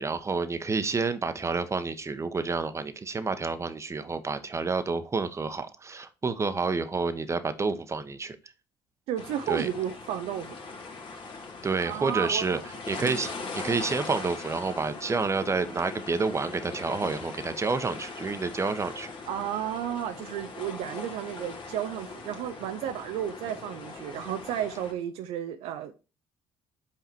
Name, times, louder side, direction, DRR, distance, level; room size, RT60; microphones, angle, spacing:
voice 1, 0.0-8.5 9.5-9.7 11.6-12.6 12.9-19.1, right 4 dB, 25° right, 1.0 m, -29 dB
voice 2, 9.1-10.6 11.8-12.6 13.0-13.2 19.3-25.9, right 10 dB, 65° right, 0.6 m, -33 dB
sound 1, 9.2-24.9, left 4 dB, 45° left, 1.7 m, -41 dB
5.8 x 4.9 x 4.4 m
hypercardioid pair, 55°, 11 cm